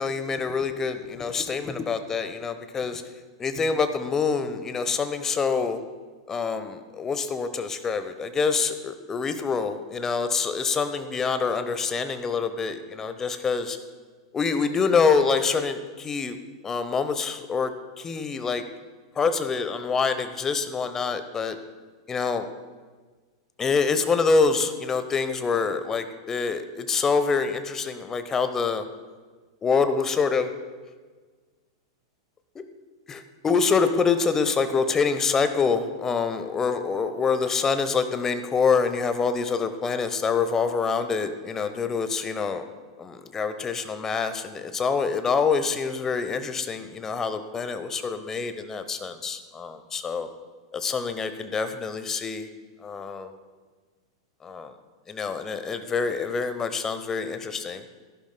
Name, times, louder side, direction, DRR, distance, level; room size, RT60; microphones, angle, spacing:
voice 1, 0.0-3.0 3.4-5.8 6.3-13.8 14.3-16.4 16.6-18.6 19.2-21.6 22.1-22.5 23.6-28.8 29.6-30.5 32.5-32.6 33.1-42.6 43.0-50.3 50.7-52.5 52.8-53.3 54.4-54.7 55.1-57.8, left 5 dB, 20° left, 10 dB, 0.8 m, -26 dB
14.5 x 11.5 x 2.2 m, 1.4 s
figure-of-eight pair, 95°, 2 cm